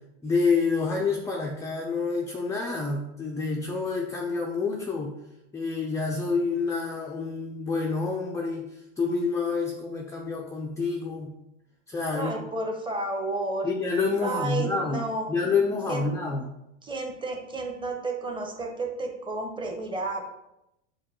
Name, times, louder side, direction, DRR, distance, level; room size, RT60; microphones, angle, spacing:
voice 1, 0.2-5.1 5.5-8.7 9.0-11.3 11.9-12.3 13.6-16.5, left 4 dB, 10° left, -1 dB, 0.4 m, -28 dB
voice 2, 12.1-13.7 14.2-15.3 15.8-16.1 16.8-20.3, right 2 dB, 15° right, 2 dB, 0.7 m, -31 dB
5.2 x 2.2 x 4.3 m, 0.86 s
supercardioid pair, 110°, 35 cm